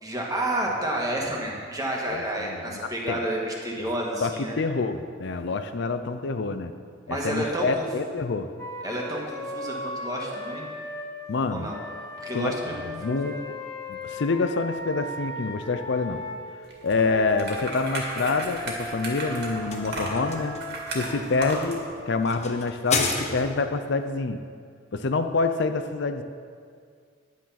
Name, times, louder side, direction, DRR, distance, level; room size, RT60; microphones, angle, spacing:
voice 1, 0.0-4.6 7.1-7.8 8.8-10.6 11.5-11.8 12.2-13.3, right 1 dB, 20° right, -2 dB, 1.8 m, -30 dB
voice 2, 2.1-3.2 3.8-3.9 4.2-6.7 7.1-8.5 11.3-11.7 12.3-12.6 12.8-13.5 13.9-16.2 16.8-20.5 20.9-24.4 24.9-26.2, left 3 dB, 65° left, 9 dB, 0.5 m, -27 dB
Wind instrument woodwind instrument, 8.6-11.1 11.7-16.4 17.0-22.4, left 1 dB, 15° left, 1.8 m, -37 dB
sound 1, 16.7-21.8, right 1 dB, 60° right, 2.3 m, -35 dB
sound 2, 18.8-23.8, left 4 dB, 35° left, 1.2 m, -33 dB
10.0 x 9.5 x 5.8 m, 2.1 s
head